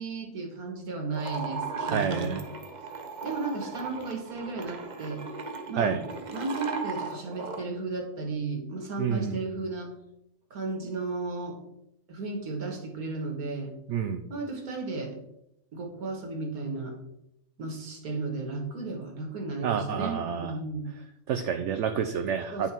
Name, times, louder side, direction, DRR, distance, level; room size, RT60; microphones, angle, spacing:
voice 1, 0.0-2.4 3.2-5.2 5.7-6.0 6.3-9.9 10.5-11.6 12.1-13.7 14.3-15.2 15.7-16.9 17.6-20.9 22.5-22.7, right 3 dB, 80° right, 3 dB, 2.2 m, -34 dB
sound 1, 1.1-7.6, right 4 dB, 35° right, 0.8 m, -37 dB
voice 2, 1.9-2.4 5.8-6.0 9.0-9.4 13.9-14.2 19.6-20.5 21.3-22.7, right 7 dB, 65° right, 7 dB, 0.9 m, -29 dB
9.8 x 5.9 x 4.4 m, 0.83 s
omnidirectional pair, 1.5 m